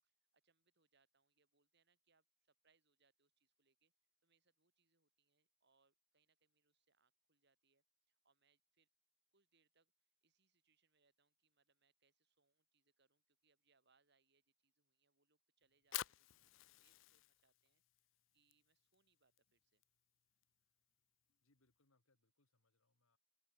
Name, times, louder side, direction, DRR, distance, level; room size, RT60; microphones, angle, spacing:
voice 1, 0.0-3.9 4.2-8.9 9.3-19.8, right 4 dB, 55° right, 5.4 m, -82 dB
Fire, 15.6-21.8, left 14 dB, 65° left, 0.5 m, -53 dB
voice 2, 21.4-23.2, left 2 dB, 85° left, 2.6 m, -81 dB
head